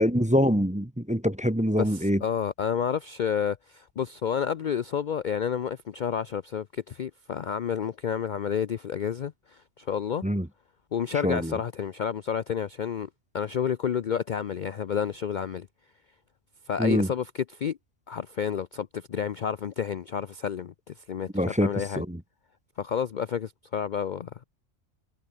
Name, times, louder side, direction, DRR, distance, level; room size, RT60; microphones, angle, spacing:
voice 1, 0.0-2.2 10.2-10.5 11.2-11.6 16.8-17.1 21.3-21.7 22.0-22.2, equal, 5° right, 0.8 m, -24 dB
voice 2, 1.8-10.2 10.9-13.1 13.3-15.7 16.7-17.8 18.1-22.0 22.8-24.3, left 8 dB, 50° left, 0.6 m, -30 dB
omnidirectional pair, 1.3 m